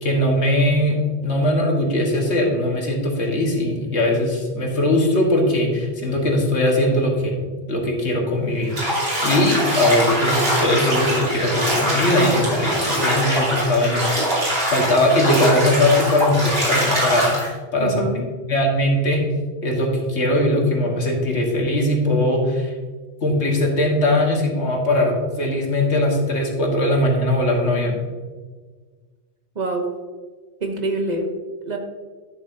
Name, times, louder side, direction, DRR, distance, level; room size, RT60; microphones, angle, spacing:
voice 1, 0.0-7.4 7.7-14.1 14.7-18.0 18.5-19.2 19.6-22.7 23.2-28.0, left 1 dB, 85° left, 0 dB, 1.8 m, -20 dB
Bathtub (filling or washing), 8.7-17.5, equal, 60° right, 3.0 m, -22 dB
voice 2, 17.8-18.3 29.5-29.9 30.6-31.3 31.7-31.8, right 2 dB, 40° right, 3 dB, 1.0 m, -25 dB
11.0 x 7.2 x 2.7 m, 1.4 s
omnidirectional pair, 1.1 m